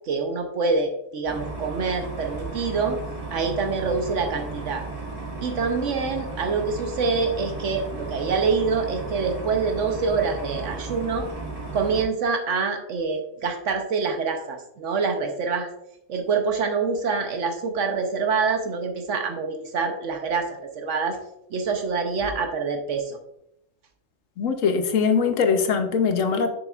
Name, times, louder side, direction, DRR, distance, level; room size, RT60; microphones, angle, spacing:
voice 1, 0.1-3.0 3.3-4.8 5.4-11.3 11.7-15.7 16.1-21.2 21.5-23.2, right 4 dB, 75° right, 4 dB, 1.1 m, -26 dB
sound 1, 1.3-12.0, right 3 dB, 25° right, 1.9 m, -35 dB
voice 2, 24.4-26.5, left 5 dB, 90° left, 7 dB, 1.2 m, -22 dB
7.1 x 6.8 x 2.4 m, 0.79 s
omnidirectional pair, 1.3 m